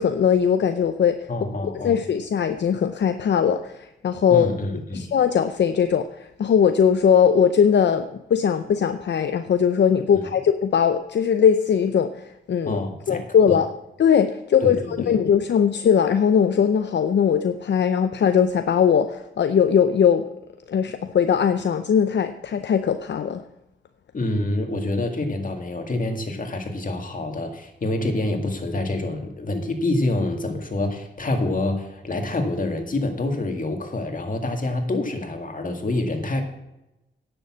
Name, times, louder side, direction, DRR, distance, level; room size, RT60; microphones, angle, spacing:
voice 1, 0.0-1.3 1.7-4.5 4.9-12.8 13.1-13.7 14.0-20.2 20.7-23.4, left 7 dB, 70° left, 9 dB, 0.6 m, -20 dB
voice 2, 1.3-2.0 4.3-5.1 12.7-13.6 14.6-15.2 24.1-36.4, left 2 dB, 45° left, 4 dB, 2.1 m, -27 dB
10.5 x 7.0 x 7.4 m, 0.93 s
cardioid pair, 70°, 19 cm